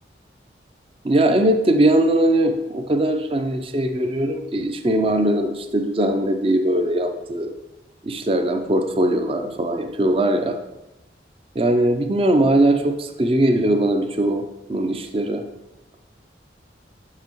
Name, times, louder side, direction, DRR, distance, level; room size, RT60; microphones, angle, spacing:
voice 1, 1.0-7.5 8.0-10.6 11.6-14.4 14.7-15.4, right 1 dB, 30° right, 5 dB, 0.4 m, -20 dB
7.4 x 5.6 x 3.0 m, 0.97 s
head